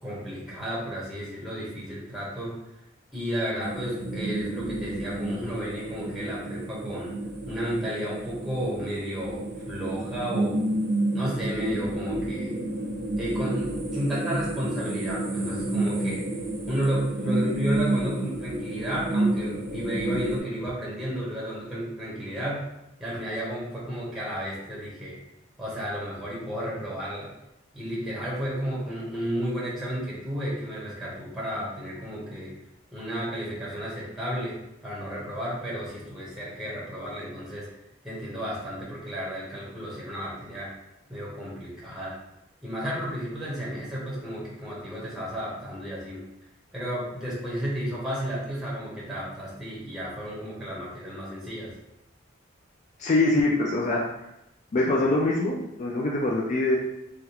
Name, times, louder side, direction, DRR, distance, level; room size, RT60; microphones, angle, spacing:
voice 1, 0.0-2.5 3.1-7.2 7.4-10.7 11.1-12.6 13.2-16.2 16.7-22.7 23.0-25.2 25.6-27.3 27.7-32.5 32.9-37.7 38.0-40.7 41.1-42.1 42.6-46.2 46.7-51.7, equal, ahead, -7 dB, 0.9 m, -32 dB
sound 1, 3.6-20.4, right 2 dB, 45° right, 0.7 m, -30 dB
voice 2, 53.0-54.0 54.7-56.8, left 2 dB, 35° left, -3 dB, 0.3 m, -23 dB
3.3 x 2.4 x 2.8 m, 0.87 s
head